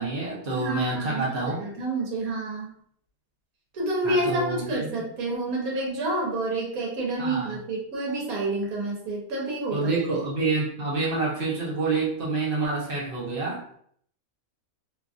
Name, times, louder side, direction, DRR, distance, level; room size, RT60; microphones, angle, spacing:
voice 1, 0.0-1.6 4.0-5.0 7.2-7.5 9.7-13.6, right 3 dB, 45° right, -4 dB, 0.9 m, -28 dB
voice 2, 0.5-2.7 3.7-9.8, right 2 dB, 75° right, -3 dB, 1.4 m, -29 dB
3.0 x 2.4 x 2.4 m, 0.62 s
omnidirectional pair, 1.5 m